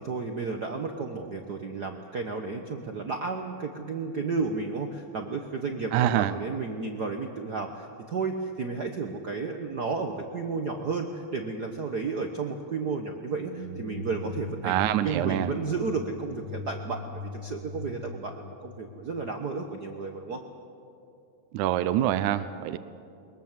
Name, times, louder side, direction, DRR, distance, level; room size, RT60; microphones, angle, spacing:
voice 1, 0.0-14.8 15.0-20.4, right 4 dB, 65° right, 4 dB, 0.9 m, -32 dB
voice 2, 5.9-6.4 14.6-15.5 21.5-22.8, right 12 dB, 85° right, 13 dB, 2.1 m, -25 dB
sound 1, 13.2-19.2, left 2 dB, 35° right, 2.8 m, -40 dB
22.0 x 21.5 x 7.4 m, 2.5 s
omnidirectional pair, 3.4 m